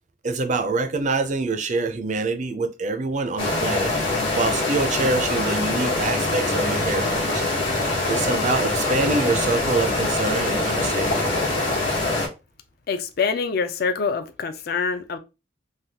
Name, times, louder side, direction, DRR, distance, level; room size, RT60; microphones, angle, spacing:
voice 1, 0.2-3.9 4.3-7.4 8.1-11.3, right 3 dB, 35° right, 0.4 m, -25 dB
sound 1, 3.4-12.3, left 2 dB, 75° left, 1.1 m, -24 dB
voice 2, 12.9-15.2, left 5 dB, 50° left, 0.3 m, -25 dB
3.3 x 2.2 x 2.7 m
head